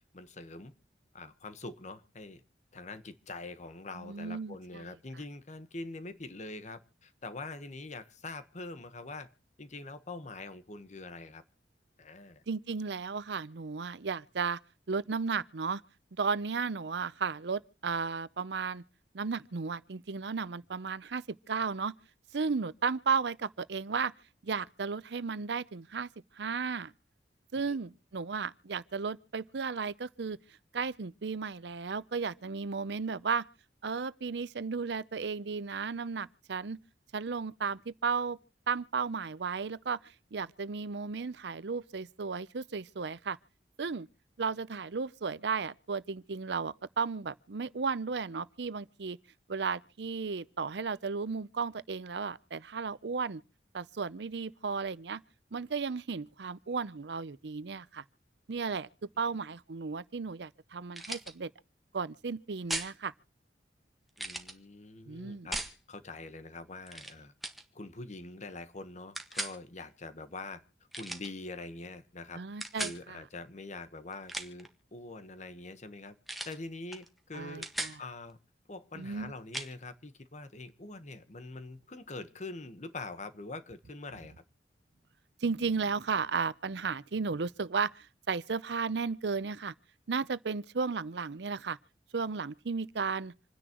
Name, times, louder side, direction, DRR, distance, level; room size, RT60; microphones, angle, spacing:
voice 1, 0.1-0.7 1.1-2.4 2.7-9.3 9.6-11.4 12.0-12.4 27.6-27.8 64.2-65.6 65.9-67.3 67.7-70.6 71.0-72.4 72.8-76.1 76.4-77.7 78.0-78.4 78.7-84.4, left 2 dB, 45° left, 1.2 m, -44 dB
voice 2, 4.0-4.8 12.5-14.6 14.9-15.8 16.1-18.8 19.1-21.9 22.3-24.1 24.4-26.1 26.3-26.9 27.5-30.4 30.7-33.4 33.8-36.8 37.1-38.4 38.7-43.4 43.8-44.1 44.4-49.2 49.5-53.4 53.7-55.2 55.5-58.0 58.5-58.9 59.2-61.5 61.9-63.1 65.1-65.5 72.4-73.2 77.3-77.9 78.9-79.3 85.4-89.7 90.1-91.8 92.1-93.3, right 5 dB, 75° right, 0.6 m, -34 dB
sound 1, 61.0-61.3 62.7-62.9 64.2-64.5 65.5-65.8 66.9-67.1 67.4-67.6 69.2-69.6 70.9-71.3 72.6-73.0 74.1-74.7 76.3-76.6 76.9-77.1 77.4-78.0 79.5-79.7, right 1 dB, ahead, 1.5 m, -37 dB
27.5 x 10.0 x 3.0 m
head